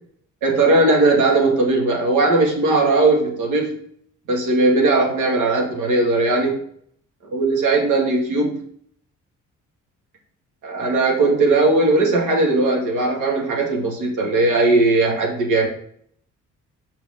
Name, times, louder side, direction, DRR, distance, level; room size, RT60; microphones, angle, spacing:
voice 1, 0.4-3.7 4.3-6.6 7.3-8.6 10.6-15.7, right 2 dB, 90° right, 0 dB, 2.2 m, -18 dB
6.7 x 5.8 x 3.7 m, 0.63 s
cardioid pair, 90°, 30 cm